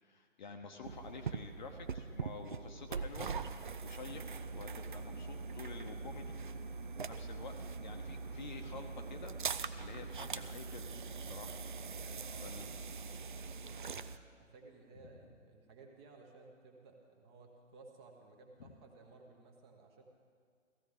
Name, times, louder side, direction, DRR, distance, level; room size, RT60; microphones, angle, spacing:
voice 1, 0.0-3.3 3.8-6.4 7.0-7.5 7.8-9.3 9.8-10.9 11.2-11.6 12.4-12.7 18.6-18.7, left 4 dB, 35° left, 5 dB, 1.0 m, -49 dB
sound 1, 0.8-14.2, right 5 dB, 40° right, 0.4 m, -42 dB
voice 2, 11.9-14.0 14.4-20.0, right 3 dB, 20° right, 2 dB, 1.2 m, -58 dB
16.0 x 15.5 x 3.6 m, 2.1 s
figure-of-eight pair, 135°, 39 cm